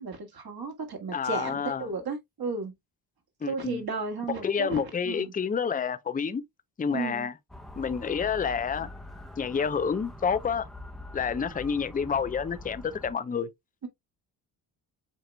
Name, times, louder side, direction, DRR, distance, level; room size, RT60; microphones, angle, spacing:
voice 1, 0.0-2.7 3.5-5.3 6.9-7.3, right 4 dB, 50° right, 1.9 m, -34 dB
voice 2, 1.1-1.9 3.4-3.8 4.4-6.4 6.8-7.3 7.8-8.9 9.4-10.7 11.1-13.5, left 6 dB, 20° left, 0.6 m, -29 dB
Motor vehicle (road) / Siren, 7.5-13.1, left 1 dB, ahead, 1.0 m, -44 dB
8.0 x 2.9 x 2.2 m
supercardioid pair, 60°, 48 cm